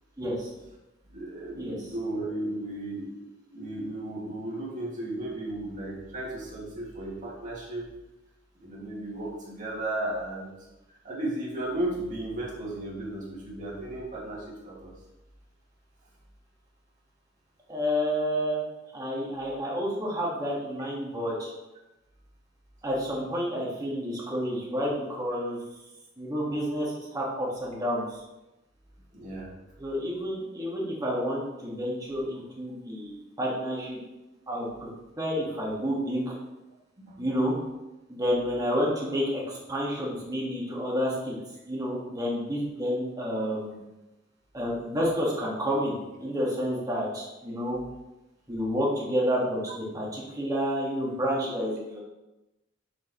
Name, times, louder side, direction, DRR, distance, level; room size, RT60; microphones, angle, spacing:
voice 1, 0.2-0.5 1.6-1.8 17.7-18.6 18.9-21.5 22.8-25.6 26.2-28.2 29.8-34.0 34.5-34.9 35.2-36.3 37.2-37.6 38.1-41.3 41.7-43.8 44.5-47.8 48.5-52.0, equal, 20° right, -4 dB, 1.8 m, -29 dB
voice 2, 1.1-3.2 3.5-7.9 8.6-10.5 11.0-14.9 29.1-29.5 37.0-37.2, right 1 dB, 40° right, -5 dB, 2.3 m, -34 dB
6.8 x 6.7 x 3.1 m, 0.99 s
head